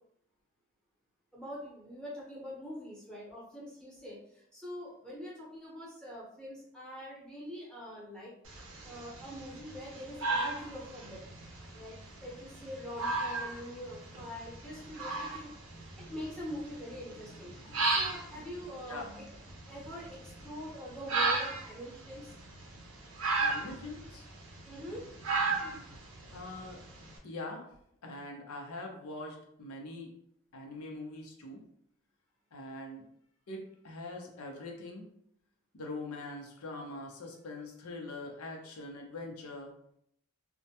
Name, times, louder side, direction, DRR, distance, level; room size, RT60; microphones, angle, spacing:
voice 1, 1.3-8.3 8.8-11.2 11.7-22.4 24.7-25.0, equal, 5° left, -6 dB, 0.7 m, -44 dB
sound 1, 8.5-27.2, right 3 dB, 65° right, 0.5 m, -36 dB
voice 2, 23.4-24.3 26.3-26.8 27.2-27.7 28.0-30.1 30.5-31.6 32.5-33.1 33.5-35.0 35.7-39.7, left 2 dB, 85° left, 1 dB, 0.6 m, -43 dB
2.1 x 2.1 x 2.7 m, 0.71 s
head